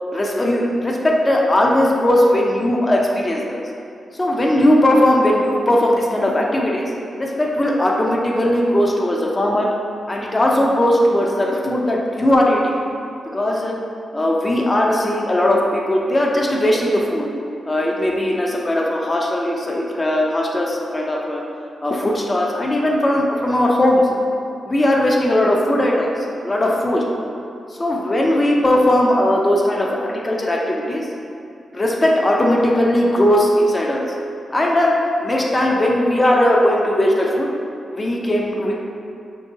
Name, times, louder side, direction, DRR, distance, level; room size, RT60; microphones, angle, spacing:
voice 1, 0.1-3.6 4.1-6.9 7.2-9.7 10.1-12.7 13.3-13.8 14.1-17.3 17.7-21.4 21.8-24.0 24.6-27.0 27.7-31.1 31.7-34.1 34.5-34.9 35.2-37.5 37.9-38.7, left 1 dB, 30° left, -2 dB, 0.4 m, -18 dB
2.9 x 2.6 x 3.6 m, 2.5 s
cardioid pair, 60°, 0 cm